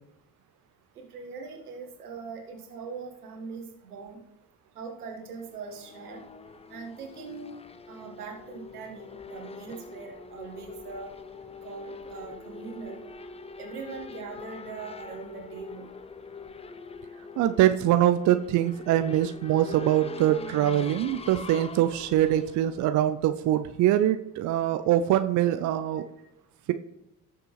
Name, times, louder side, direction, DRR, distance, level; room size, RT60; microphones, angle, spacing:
voice 1, 1.0-4.2 4.8-6.2 6.7-7.6 7.9-11.1 11.6-13.0 13.6-15.9, right 5 dB, 80° right, 1 dB, 1.8 m, -41 dB
Race car auto racing / Accelerating revving vroom, 5.4-23.5, left 4 dB, 15° left, 0.5 m, -44 dB
voice 2, 17.4-26.0, right 12 dB, 40° right, 10 dB, 0.6 m, -23 dB
18.0 x 6.8 x 3.2 m, 0.89 s
figure-of-eight pair, 50°, 45 cm